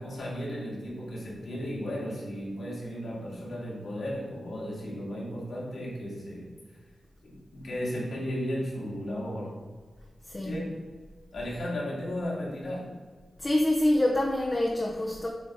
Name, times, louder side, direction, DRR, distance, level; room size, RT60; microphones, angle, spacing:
voice 1, 0.0-6.5 7.2-9.6 10.4-10.8 11.3-12.9, equal, 65° left, -4 dB, 2.2 m, -35 dB
voice 2, 10.3-10.6 13.4-15.3, left 1 dB, 25° left, -1 dB, 0.8 m, -26 dB
7.9 x 3.8 x 5.0 m, 1.5 s
wide cardioid pair, 140°, 0 cm